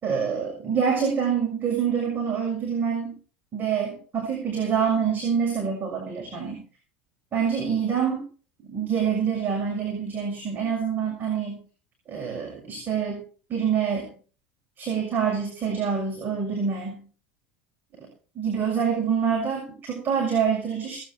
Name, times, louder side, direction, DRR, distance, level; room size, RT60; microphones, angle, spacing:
voice 1, 0.0-3.1 3.5-6.6 7.3-8.2 8.6-11.6 12.1-13.2 13.5-14.1 14.8-17.0 18.0-18.1 18.3-21.0, right 7 dB, 35° right, 0 dB, 6.4 m, -26 dB
19.0 x 9.3 x 4.5 m, 0.41 s
hypercardioid pair, 90°, 6 cm